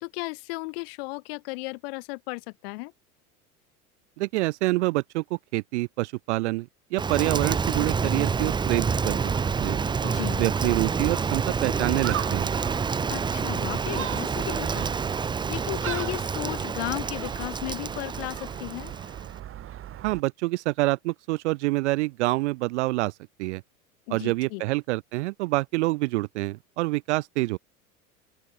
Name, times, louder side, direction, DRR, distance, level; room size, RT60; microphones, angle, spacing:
voice 1, 0.0-2.9 10.0-10.4 13.1-15.0 15.5-18.9 24.1-24.6, left 26 dB, 45° left, 0.5 m, -35 dB
voice 2, 4.2-9.2 9.6-9.8 10.4-12.5 20.0-23.1 23.4-23.6 24.1-27.6, right 21 dB, 55° right, 0.5 m, -27 dB
Rain, 7.0-19.4, right 5 dB, 10° right, 0.6 m, -28 dB
Gull seagull, 8.8-20.2, right 12 dB, 30° right, 1.4 m, -38 dB
open air
figure-of-eight pair, 80°, 44 cm